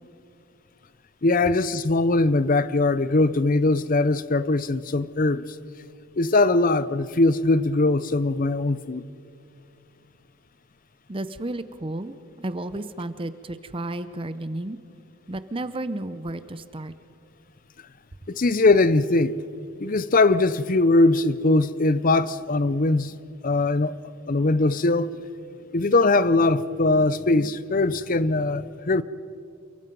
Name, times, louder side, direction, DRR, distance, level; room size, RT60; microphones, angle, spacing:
voice 1, 1.2-5.4 6.2-9.1 18.3-19.4 19.8-23.1 23.4-23.9 24.3-25.2 25.7-29.0, left 2 dB, 40° left, 0.6 m, -21 dB
voice 2, 11.1-14.8 15.3-16.9, right 1 dB, 25° right, 0.6 m, -32 dB
29.0 x 23.0 x 5.4 m
head